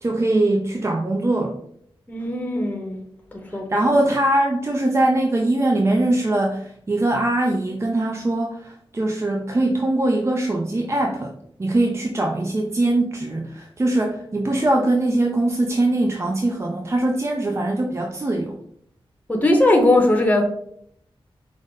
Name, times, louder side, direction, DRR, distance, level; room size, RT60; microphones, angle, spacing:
voice 1, 0.0-1.6 3.7-11.3 11.6-18.6, right 1 dB, 30° right, 1 dB, 0.5 m, -21 dB
voice 2, 2.1-3.0 3.3-3.7 19.3-20.4, left 1 dB, 15° left, 2 dB, 0.8 m, -19 dB
4.9 x 2.1 x 3.8 m, 0.68 s
wide cardioid pair, 75°, 10 cm